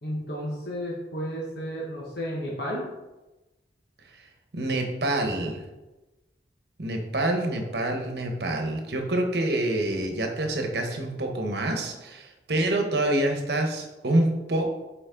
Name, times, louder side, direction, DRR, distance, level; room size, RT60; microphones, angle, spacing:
voice 1, 0.0-2.9, equal, 65° left, -4 dB, 1.2 m, -32 dB
voice 2, 4.5-5.6 6.8-14.7, right 1 dB, 70° right, 3 dB, 1.0 m, -26 dB
6.9 x 4.4 x 3.8 m, 1.1 s
head